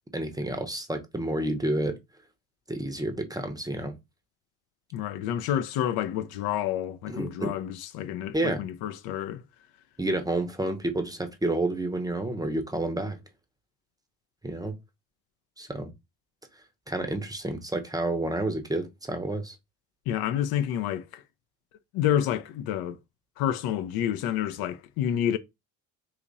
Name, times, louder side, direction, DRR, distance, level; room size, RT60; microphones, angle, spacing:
voice 1, 0.1-2.0 2.7-3.9 7.1-7.5 8.3-8.6 10.0-13.2 14.4-14.7 15.6-15.9 16.9-19.5, right 1 dB, 10° right, 0.7 m, -29 dB
voice 2, 4.9-9.4 20.1-21.2 21.9-23.0 23.4-25.4, left 10 dB, 55° left, 0.5 m, -29 dB
2.9 x 2.5 x 3.9 m
hypercardioid pair, 70°, 44 cm